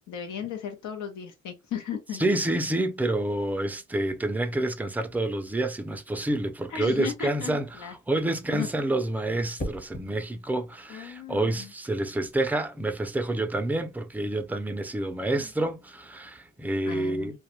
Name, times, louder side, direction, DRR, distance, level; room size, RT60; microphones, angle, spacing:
voice 1, 0.1-2.2 6.7-8.7 10.9-11.7 16.9-17.4, left 8 dB, 75° left, 0.7 m, -36 dB
voice 2, 2.2-7.6 8.1-17.3, right 1 dB, 5° right, 0.3 m, -28 dB
sound 1, 9.6-10.1 12.1-12.4, left 1 dB, 30° left, 1.0 m, -37 dB
2.3 x 2.1 x 3.0 m
cardioid pair, 90°, 30 cm